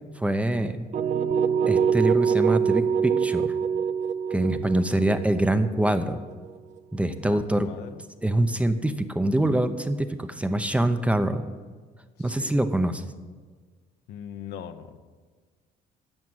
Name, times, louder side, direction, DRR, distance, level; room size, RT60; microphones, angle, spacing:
voice 1, 0.2-0.9 1.7-3.5 4.3-6.2 6.9-7.7 8.2-11.4 12.2-13.0, right 1 dB, 5° right, 9 dB, 0.7 m, -24 dB
sound 1, 0.9-6.8, right 7 dB, 45° right, 0.7 m, -25 dB
voice 2, 7.1-8.0 12.2-12.6 14.1-15.0, left 9 dB, 80° left, 8 dB, 0.9 m, -41 dB
11.0 x 7.0 x 7.8 m, 1.5 s
cardioid pair, 110°, 17 cm